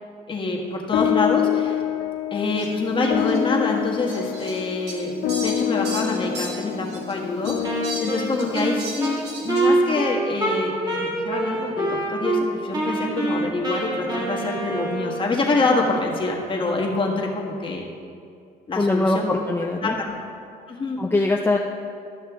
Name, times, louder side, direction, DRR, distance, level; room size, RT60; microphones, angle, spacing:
voice 1, 0.3-1.8 2.3-5.1 5.4-17.9 18.7-19.3 19.8-19.9 20.7-21.0, left 3 dB, 30° left, -1 dB, 1.6 m, -26 dB
sound 1, 0.9-9.6, left 10 dB, 80° left, 0.6 m, -27 dB
Fowl, 2.6-2.7 3.2-3.4 4.1-7.1 7.4-9.7, right 2 dB, 80° right, 1.8 m, -36 dB
Wind instrument woodwind instrument, 7.6-12.4 12.7-15.3, right 2 dB, 25° right, 1.9 m, -25 dB
voice 2, 18.8-20.0 21.0-21.6, left 2 dB, 10° left, 0 dB, 0.5 m, -22 dB
13.0 x 6.4 x 3.6 m, 2.4 s
cardioid pair, 110°, 17 cm